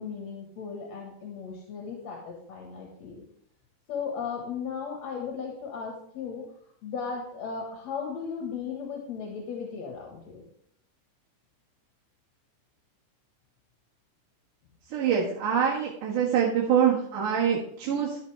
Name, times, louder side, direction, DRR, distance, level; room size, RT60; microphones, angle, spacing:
voice 1, 0.0-3.2 3.9-6.4 6.8-10.4, left 6 dB, 60° left, -1 dB, 2.6 m, -36 dB
voice 2, 14.9-18.2, right 8 dB, 75° right, -5 dB, 3.2 m, -25 dB
12.5 x 7.9 x 3.4 m, 0.66 s
omnidirectional pair, 3.7 m